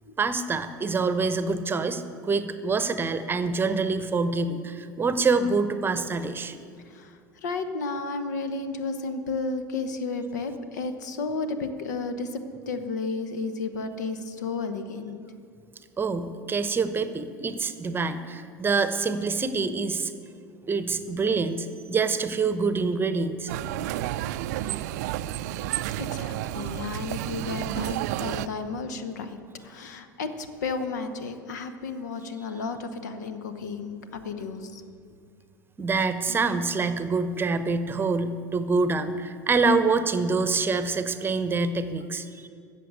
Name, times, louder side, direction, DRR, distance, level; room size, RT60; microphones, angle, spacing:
voice 1, 0.2-6.6 16.0-20.1 20.7-23.5 24.7-24.8 35.8-42.3, right 4 dB, 20° right, 11 dB, 0.9 m, -26 dB
voice 2, 6.9-12.4 12.7-15.2 26.0-29.4 29.6-34.8 36.3-36.4, left 4 dB, 70° left, 9 dB, 1.1 m, -33 dB
sound 1, 23.5-28.5, right 13 dB, 60° right, 0.4 m, -31 dB
14.0 x 7.6 x 8.1 m, 2.3 s
figure-of-eight pair, 75°, 10 cm